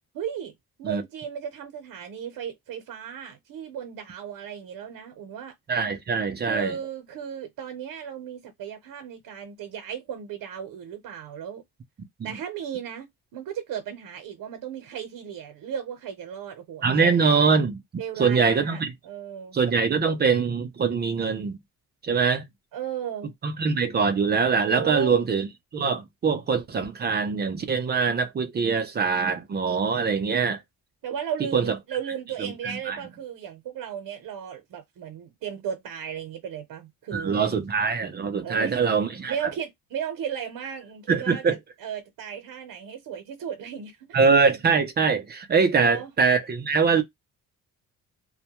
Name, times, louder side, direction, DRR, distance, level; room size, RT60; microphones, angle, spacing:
voice 1, 0.1-0.5 0.8-5.5 6.4-11.6 12.2-17.2 18.0-19.6 22.7-23.3 24.7-25.2 31.0-37.6 38.4-38.9 39.3-44.2 45.7-46.1, right 8 dB, 80° right, 0.8 m, -35 dB
voice 2, 5.7-6.8 12.2-12.4 16.8-17.8 18.2-18.9 19.5-21.6 22.0-22.4 23.4-30.6 31.5-31.7 32.4-33.0 37.1-39.5 41.1-41.6 44.1-47.0, right 5 dB, 30° right, 0.4 m, -23 dB
2.1 x 2.1 x 2.8 m
cardioid pair, 145°, 35 cm